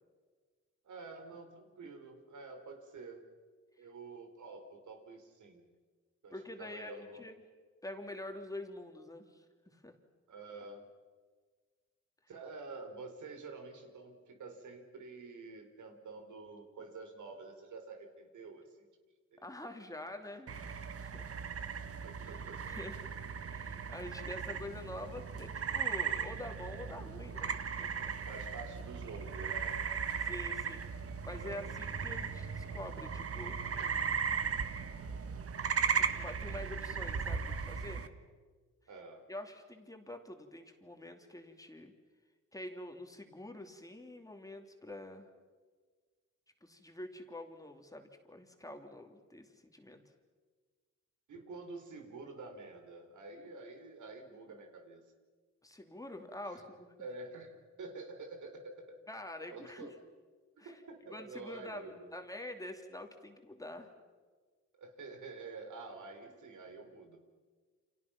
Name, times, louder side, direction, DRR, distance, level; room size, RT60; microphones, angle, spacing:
voice 1, 0.8-3.3 3.8-5.7 6.2-7.2 10.3-10.9 12.3-18.9 19.3-20.0 22.0-22.7 28.3-29.8 31.4-31.6 38.9-39.3 51.3-55.0 56.5-56.6 57.0-59.0 59.5-60.0 60.6-62.2 64.8-67.2, right 3 dB, 85° right, 4 dB, 4.7 m, -48 dB
voice 2, 6.3-7.3 7.8-9.9 19.4-20.7 21.0-21.3 22.2-23.0 23.5-27.5 27.8-28.2 30.2-33.6 36.0-38.1 39.3-41.9 42.5-45.3 46.6-50.0 55.6-57.1 59.1-59.9 60.6-60.8 61.1-63.9, left 1 dB, 10° left, 4 dB, 2.7 m, -46 dB
sound 1, 20.5-38.1, right 6 dB, 50° right, 1.5 m, -37 dB
30.0 x 28.5 x 6.0 m, 1.5 s
wide cardioid pair, 135°, 29 cm